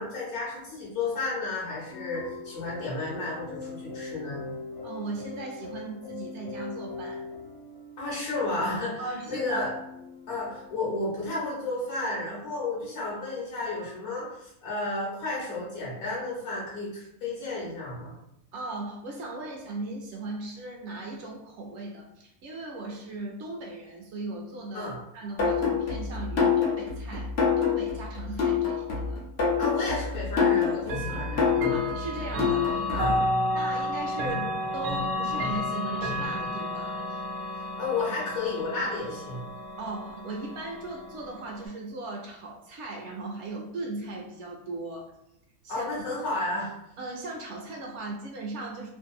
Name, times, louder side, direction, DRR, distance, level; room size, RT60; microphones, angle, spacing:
voice 1, 0.0-4.4 8.0-9.7 10.3-18.1 24.7-25.0 29.6-31.5 32.9-33.1 37.8-39.4 45.7-46.7, left 2 dB, 75° left, -6 dB, 1.3 m, -32 dB
sound 1, 1.9-11.0, left 3 dB, 25° left, 0.9 m, -42 dB
voice 2, 4.8-7.3 9.0-9.7 18.5-29.2 31.1-31.3 31.7-33.1 33.5-37.2 39.8-45.1 45.6-45.9 47.0-48.9, right 2 dB, 65° right, 0 dB, 0.7 m, -38 dB
sound 2, 25.4-33.2, left 6 dB, 55° left, 0.9 m, -26 dB
Chime / Clock, 30.8-41.7, left 1 dB, 85° right, 1.1 m, -32 dB
2.7 x 2.6 x 2.3 m, 0.80 s
omnidirectional pair, 1.5 m